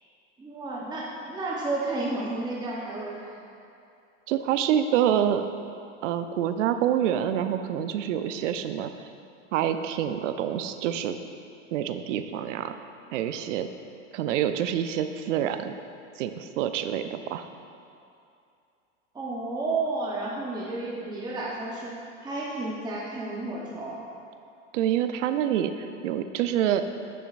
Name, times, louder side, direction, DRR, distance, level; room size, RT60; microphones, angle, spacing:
voice 1, 0.4-3.5 19.1-21.9 22.2-24.0, right 2 dB, 10° right, -5 dB, 0.8 m, -32 dB
voice 2, 4.3-5.5 6.0-9.1 9.5-11.2 11.7-12.7 13.1-13.7 14.1-15.7 16.2-17.5 24.7-26.8, right 10 dB, 75° right, 9 dB, 0.5 m, -27 dB
8.7 x 6.5 x 2.5 m, 2.6 s
hypercardioid pair, 105°, 37 cm